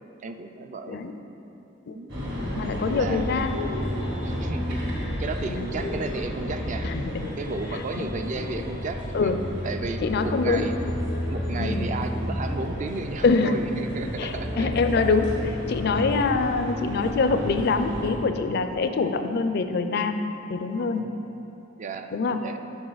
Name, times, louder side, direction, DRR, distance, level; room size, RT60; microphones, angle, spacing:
voice 1, 0.2-1.0 1.9-2.1 2.8-3.3 4.2-9.3 9.6-10.7 11.3-14.7 20.9-21.3 21.8-22.6, right 3 dB, 40° right, 7 dB, 0.3 m, -34 dB
sound 1, 2.1-18.1, left 1 dB, 60° right, 1.7 m, -31 dB
voice 2, 2.6-3.7 5.5-5.7 6.8-7.3 8.0-8.1 9.1-9.4 10.0-10.7 11.6-11.9 13.2-13.6 14.2-20.2 20.5-21.1 22.1-22.4, left 4 dB, 55° left, 8 dB, 0.4 m, -25 dB
7.9 x 6.1 x 4.0 m, 3.0 s
head